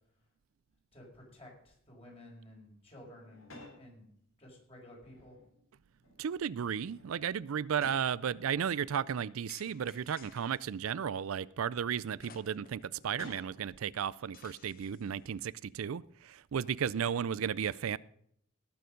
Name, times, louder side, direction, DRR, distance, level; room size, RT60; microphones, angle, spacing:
voice 1, 0.9-4.1 4.4-5.4, left 1 dB, 30° left, 5.1 m, -53 dB
sound 1, 3.2-3.9 4.9-5.6 6.0-6.3 6.7-8.2 9.0-9.1 10.3-11.2 12.9-13.7, left 2 dB, 75° left, 3.6 m, -54 dB
voice 2, 6.2-18.0, right 8 dB, 85° right, 0.4 m, -34 dB
sound 2, 9.5-10.7 12.2-12.9 13.3-13.4 14.3-15.2, left 6 dB, 45° left, 0.9 m, -57 dB
18.5 x 7.0 x 5.1 m
head